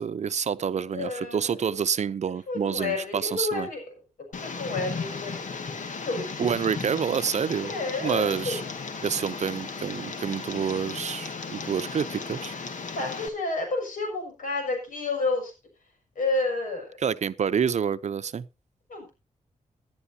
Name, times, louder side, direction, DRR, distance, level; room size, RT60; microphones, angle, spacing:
voice 1, 0.0-3.7 6.4-7.7 8.0-8.6 9.0-12.5 17.0-18.5, right 7 dB, 60° right, 0.7 m, -28 dB
voice 2, 0.9-1.8 2.5-3.8 4.4-6.6 7.6-8.6 12.9-15.5 16.2-16.9 18.9-19.1, left 3 dB, 85° left, 6.5 m, -30 dB
Tick, 4.3-13.3, left 4 dB, 70° left, 1.9 m, -36 dB
18.0 x 10.5 x 2.8 m
cardioid pair, 70°, 13 cm